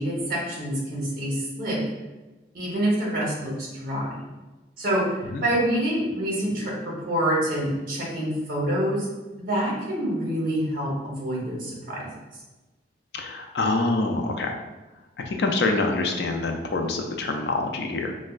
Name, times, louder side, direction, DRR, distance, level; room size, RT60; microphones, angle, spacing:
voice 1, 0.0-1.8 2.5-4.2 4.8-5.1 5.4-9.1 9.4-12.1, right 1 dB, 50° right, -4 dB, 0.9 m, -26 dB
voice 2, 13.1-14.5 15.2-18.1, left 3 dB, 60° left, 3 dB, 0.3 m, -26 dB
4.3 x 2.1 x 2.3 m, 1.1 s
head